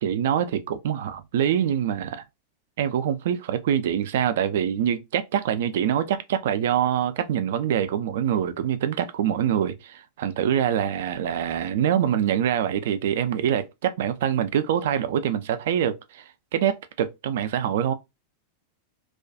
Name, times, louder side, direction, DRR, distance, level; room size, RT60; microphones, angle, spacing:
voice 1, 0.0-2.2 2.8-17.9, right 9 dB, 55° right, 0.3 m, -25 dB
2.3 x 2.2 x 2.5 m
figure-of-eight pair, 90°, 0 cm